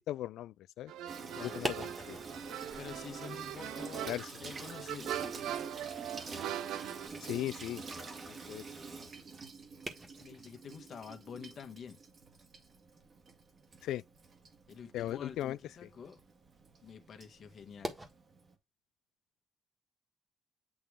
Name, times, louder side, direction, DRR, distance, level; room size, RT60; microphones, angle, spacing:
voice 1, 0.1-0.9 1.2-2.2 4.1-4.2 7.2-7.8 8.2-8.6 13.8-14.0 14.9-15.9, left 13 dB, 85° left, 0.3 m, -38 dB
sound 1, 0.9-7.1, right 11 dB, 90° right, 0.5 m, -41 dB
Water tap faucet / Sink (filling or washing), 1.1-18.5, right 4 dB, 45° right, 1.7 m, -48 dB
voice 2, 1.3-1.7 2.8-5.4 10.2-12.0 14.7-16.2 16.8-18.0, left 7 dB, 55° left, 1.3 m, -48 dB
sound 2, 1.4-18.1, right 1 dB, 15° right, 1.7 m, -49 dB
8.6 x 3.1 x 3.6 m
cardioid pair, 90°, 0 cm